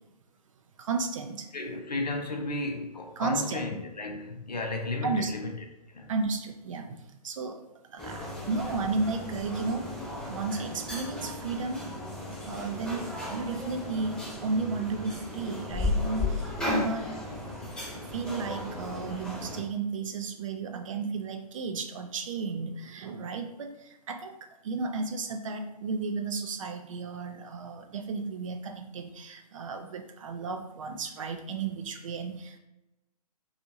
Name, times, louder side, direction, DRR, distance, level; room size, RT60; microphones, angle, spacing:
voice 1, 0.8-1.5 3.2-3.6 5.0-5.3 6.1-7.6 7.9-9.9 10.3-11.9 12.4-17.1 18.1-24.3 24.6-32.6, right 4 dB, 55° right, 0.4 m, -33 dB
voice 2, 1.5-5.6 5.9-6.1, left 2 dB, 85° left, 0.6 m, -34 dB
sound 1, 8.0-19.6, left 2 dB, 5° left, 0.8 m, -35 dB
2.6 x 2.4 x 2.7 m
figure-of-eight pair, 125°, 21 cm